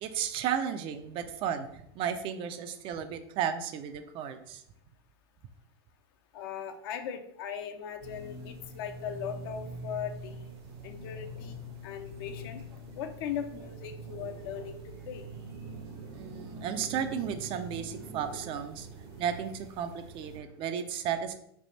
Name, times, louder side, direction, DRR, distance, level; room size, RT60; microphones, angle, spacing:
voice 1, 0.0-4.6 16.1-18.9 19.2-21.3, right 8 dB, 40° right, 9 dB, 0.4 m, -34 dB
voice 2, 6.3-10.5 10.8-12.6 13.0-14.8 15.0-15.3, left 8 dB, 60° left, 7 dB, 0.5 m, -39 dB
sound 1, 8.0-20.4, right 2 dB, 65° right, 1.0 m, -44 dB
3.4 x 2.5 x 4.0 m, 0.74 s
hypercardioid pair, 110°, 13 cm